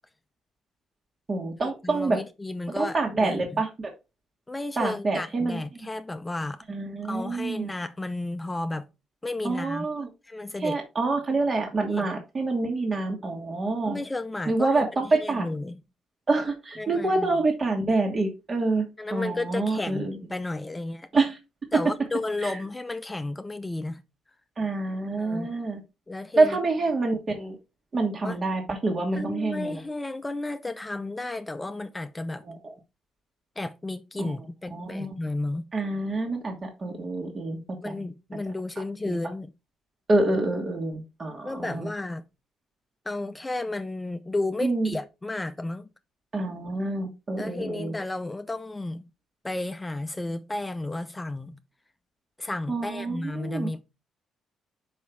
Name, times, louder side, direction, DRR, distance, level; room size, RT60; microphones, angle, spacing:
voice 1, 1.3-2.2 2.7-3.9 4.8-5.6 6.7-7.7 9.4-10.1 10.6-14.0 14.5-15.5 16.3-18.9 19.1-20.1 21.1-21.4 21.7-21.8 22.4-22.5 24.6-25.8 26.4-27.5 27.9-29.8 32.5-32.6 34.2-34.3 34.7-35.1 35.7-37.6 37.8-37.9 39.1-39.2 40.1-41.9 44.6-44.9 46.3-47.9 52.7-53.7, right 3 dB, 35° right, 1.6 m, -26 dB
voice 2, 1.8-3.6 4.5-6.6 7.0-8.9 9.2-9.9 10.2-10.8 11.9-12.1 13.8-15.8 16.8-17.4 19.0-21.1 21.7-24.0 25.2-25.5 26.1-26.6 28.2-28.4 29.1-32.4 33.6-35.7 37.8-39.5 41.4-42.2 43.1-45.9 47.4-49.0 49.4-51.6 52.4-53.8, left 2 dB, 15° left, 0.7 m, -33 dB
5.5 x 5.3 x 4.6 m
cardioid pair, 90°, 0 cm